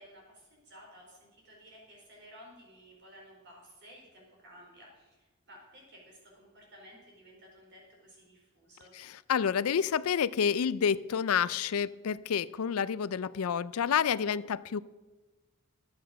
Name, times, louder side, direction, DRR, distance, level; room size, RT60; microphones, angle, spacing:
voice 1, 0.0-8.9, equal, 55° right, -2 dB, 4.8 m, -55 dB
voice 2, 9.0-14.8, left 7 dB, 90° left, 18 dB, 0.4 m, -29 dB
12.0 x 8.7 x 6.7 m, 1.2 s
head